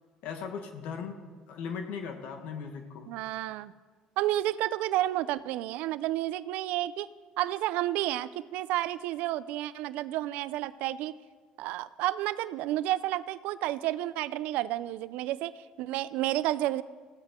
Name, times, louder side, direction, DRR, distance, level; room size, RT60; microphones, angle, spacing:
voice 1, 0.2-3.1, left 6 dB, 75° left, 5 dB, 1.6 m, -38 dB
voice 2, 3.1-3.7 4.2-7.1 7.4-11.1 11.6-16.8, right 14 dB, 80° right, 15 dB, 0.5 m, -31 dB
20.5 x 15.5 x 3.8 m, 1.5 s
cardioid pair, 125°, 3 cm